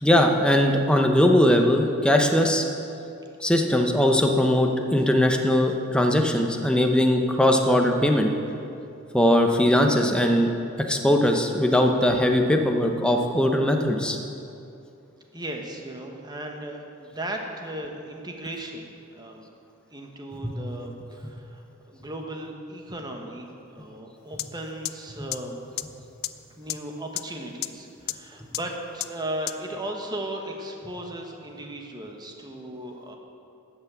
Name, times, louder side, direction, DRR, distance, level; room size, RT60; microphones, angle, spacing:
voice 1, 0.0-2.6 3.4-8.3 9.1-10.5 10.8-14.2 20.4-20.5, left 1 dB, 5° left, 3 dB, 0.7 m, -20 dB
voice 2, 15.3-19.5 19.9-25.6 26.6-33.2, right 1 dB, 20° right, 2 dB, 1.2 m, -36 dB
sound 1, 24.4-24.5 24.8-24.9 25.3-25.4 25.8-25.9 26.2-26.3 26.7-26.8 27.2-27.3 27.6-27.7 28.1-28.2 28.5-28.6 29.0-29.1 29.5-29.6, left 16 dB, 50° left, 0.3 m, -28 dB
12.5 x 5.9 x 8.1 m, 2.6 s
head